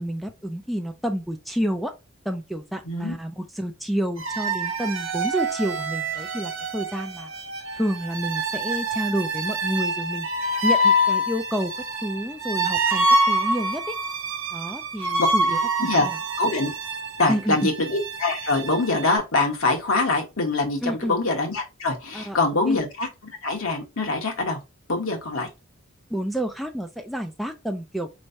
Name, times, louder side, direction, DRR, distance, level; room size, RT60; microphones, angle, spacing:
voice 1, 0.0-1.9 2.3-7.3 7.8-10.3 10.6-11.7 12.0-13.9 14.5-16.2 17.3-17.7 20.8-21.2 22.1-22.4 22.7-22.8 26.1-28.1, equal, ahead, 0.4 m, -29 dB
sound 1, 4.2-19.2, right 1 dB, 65° right, 1.1 m, -26 dB
voice 2, 16.4-16.7 17.2-23.1 23.4-24.6 24.9-25.5, left 3 dB, 70° left, 1.3 m, -24 dB
4.4 x 3.2 x 2.6 m
head